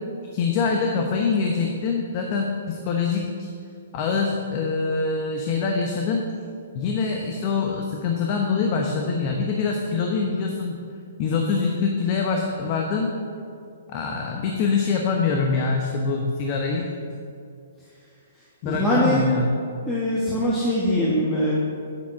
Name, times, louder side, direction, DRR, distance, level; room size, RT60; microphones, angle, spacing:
voice 1, 0.3-3.5 3.9-6.2 6.7-10.8 11.2-13.1 13.9-16.9 18.6-19.5, left 4 dB, 40° left, 1 dB, 0.9 m, -24 dB
voice 2, 18.6-19.3 19.9-21.5, equal, 10° left, -8 dB, 1.5 m, -22 dB
8.9 x 5.8 x 5.9 m, 2.4 s
hypercardioid pair, 130°, 0 cm